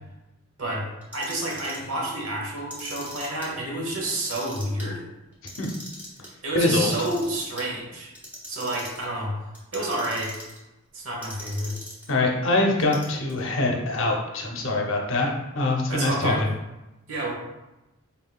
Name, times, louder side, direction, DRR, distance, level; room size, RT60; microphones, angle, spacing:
Clock, 1.0-1.9 2.6-3.5 3.9-4.9 5.3-6.3 6.8-7.7 8.1-9.1 9.5-10.6 11.2-12.1 12.8-13.4, equal, 10° right, 0.7 m, -40 dB
voice 1, 1.1-5.0 6.4-8.1 8.5-9.3 9.7-10.3 10.9-11.7 15.9-16.5 17.1-17.3, right 1 dB, 70° right, -2 dB, 1.1 m, -29 dB
voice 2, 6.5-7.0 12.1-15.3 15.5-16.3, left 2 dB, 60° left, 0 dB, 0.7 m, -23 dB
4.2 x 3.6 x 2.3 m, 0.99 s
head